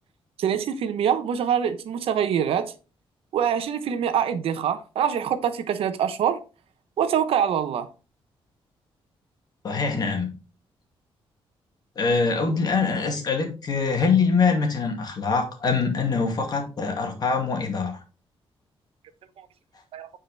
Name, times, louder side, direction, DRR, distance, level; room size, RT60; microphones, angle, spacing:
voice 1, 0.4-2.7 3.3-6.4 7.0-7.9 19.9-20.1, right 8 dB, 75° right, 0.9 m, -24 dB
voice 2, 9.6-10.3 12.0-18.0, left 4 dB, 45° left, 2.2 m, -24 dB
9.2 x 4.9 x 3.4 m
cardioid pair, 150°, 10 cm